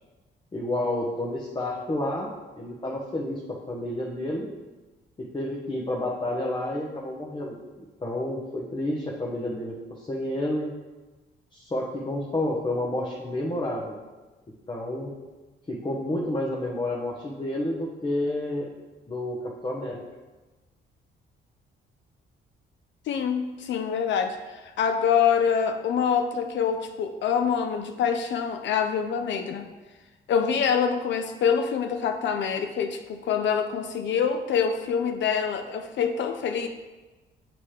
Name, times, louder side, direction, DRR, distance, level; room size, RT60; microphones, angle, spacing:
voice 1, 0.5-2.3 2.5-4.5 5.2-7.5 8.0-10.7 11.5-13.9 14.7-15.1 15.7-18.7 19.1-20.0, left 1 dB, 25° left, -2 dB, 0.9 m, -30 dB
voice 2, 23.1-29.7 30.3-36.7, left 7 dB, 65° left, 6 dB, 0.5 m, -25 dB
7.1 x 3.0 x 4.9 m, 1.2 s
cardioid pair, 90°, 20 cm